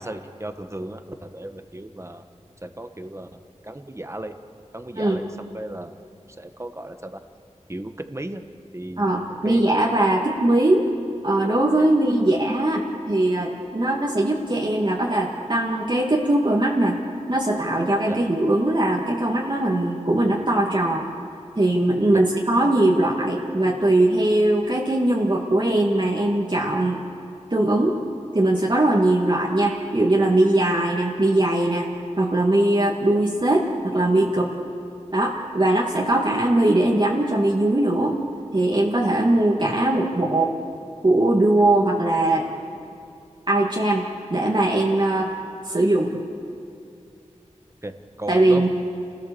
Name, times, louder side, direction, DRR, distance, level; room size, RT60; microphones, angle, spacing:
voice 1, 0.0-2.2 2.6-3.3 3.6-4.3 4.7-5.9 6.4-7.2 7.7-8.4 8.7-9.6 18.1-18.2 22.1-22.2 29.3-29.4 33.1-33.2 47.8-48.7, right 1 dB, 25° right, 8 dB, 1.3 m, -35 dB
voice 2, 9.0-10.9 11.2-17.0 17.3-21.1 21.6-27.0 27.5-28.0 28.3-31.9 32.2-34.5 35.1-38.2 38.5-40.5 41.0-42.5 43.5-45.3 45.7-46.2 48.3-48.7, right 1 dB, 40° right, -3 dB, 2.1 m, -20 dB
29.0 x 16.5 x 7.0 m, 2.5 s
wide cardioid pair, 70°, 12 cm